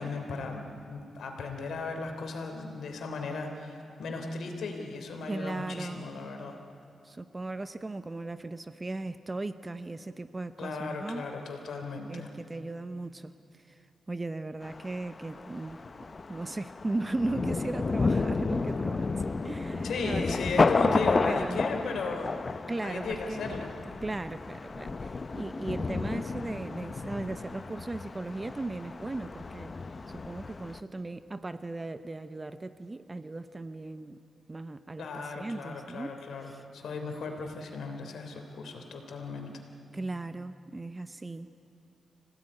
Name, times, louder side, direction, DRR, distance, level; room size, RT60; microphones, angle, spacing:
voice 1, 0.0-6.6 10.6-12.3 19.8-23.7 35.0-39.5, left 3 dB, 85° left, 4 dB, 3.2 m, -36 dB
voice 2, 5.3-6.0 7.0-11.3 12.0-13.3 13.7-13.8 14.1-15.8 16.3-19.1 19.4-20.4 21.3-21.6 22.7-23.5 24.0-29.7 30.1-34.2 34.5-36.1 36.4-36.6 39.9-41.6, right 2 dB, 20° right, 12 dB, 0.7 m, -37 dB
Thunder, 14.6-30.8, left 3 dB, 35° left, 0.7 m, -32 dB
26.0 x 17.0 x 9.8 m, 2.7 s
wide cardioid pair, 115°, 0 cm